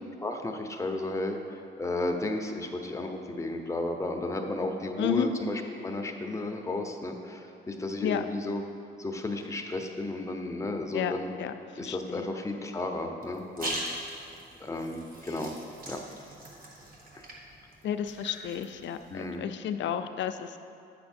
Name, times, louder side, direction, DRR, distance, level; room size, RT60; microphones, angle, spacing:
voice 1, 0.2-8.6 9.0-11.3 11.8-13.8 14.1-14.3 14.6-15.5 15.8-16.0 17.1-17.2 19.1-19.5, left 2 dB, 15° left, 3 dB, 0.8 m, -33 dB
voice 2, 5.0-5.3 8.0-8.2 10.9-11.1 11.4-12.3 17.8-20.6, left 9 dB, 65° left, 9 dB, 0.5 m, -31 dB
sound 1, 13.2-19.3, right 1 dB, 45° right, 1.5 m, -41 dB
8.6 x 5.7 x 4.4 m, 2.5 s
cardioid pair, 90°, 20 cm